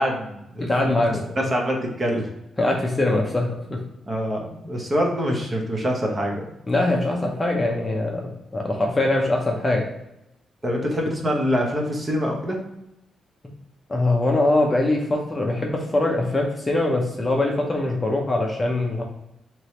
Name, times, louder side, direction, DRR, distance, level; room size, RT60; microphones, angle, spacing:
voice 1, 0.0-0.9 1.3-2.3 4.1-6.5 10.6-12.6, equal, 25° right, 0 dB, 0.9 m, -25 dB
voice 2, 0.6-1.2 2.6-3.8 6.7-8.2 8.5-9.9 13.9-19.0, left 2 dB, 15° left, 0 dB, 0.7 m, -22 dB
3.3 x 3.0 x 4.2 m, 0.87 s
cardioid pair, 140°, 0 cm